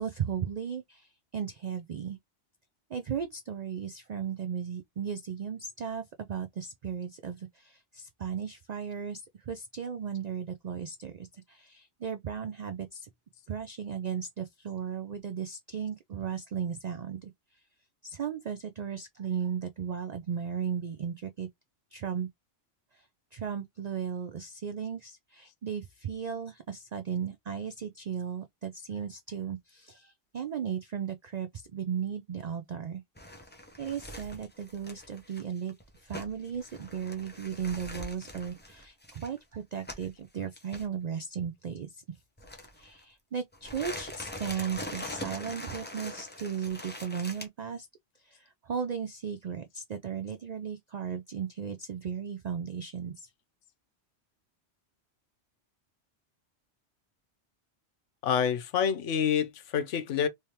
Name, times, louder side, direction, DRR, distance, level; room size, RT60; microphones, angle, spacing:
voice 1, 0.0-2.2 2.9-13.1 13.5-17.3 18.0-21.5 21.9-22.3 22.9-23.0 23.3-33.0 33.8-42.0 42.8-47.9 48.2-53.3, right 7 dB, 60° right, 0.4 m, -36 dB
sound 1, 33.2-40.2 40.6-40.8 42.4-43.0 43.5-47.5, left 1 dB, 10° left, 0.5 m, -43 dB
voice 2, 58.2-60.3, left 8 dB, 85° left, 1.0 m, -27 dB
3.3 x 3.2 x 2.8 m
omnidirectional pair, 1.2 m